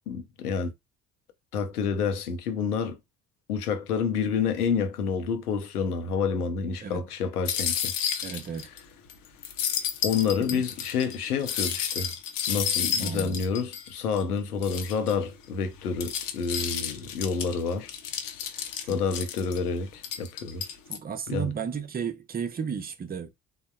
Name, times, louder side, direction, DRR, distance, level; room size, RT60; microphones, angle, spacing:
voice 1, 0.1-0.7 1.5-3.0 3.5-7.9 10.0-12.1 12.5-17.9 18.9-20.7 21.3-21.5, left 6 dB, 85° left, 0.6 m, -28 dB
sound 1, 7.5-8.8 9.1-9.2 9.4-14.2 14.6-15.1 15.7-19.6 20.0-21.0, left 8 dB, 50° left, 0.7 m, -31 dB
voice 2, 8.2-8.7 10.5-10.6 13.0-13.4 18.9-19.0 20.9-23.3, right 6 dB, 20° right, 0.6 m, -33 dB
3.5 x 2.0 x 2.2 m
figure-of-eight pair, 50°, 44 cm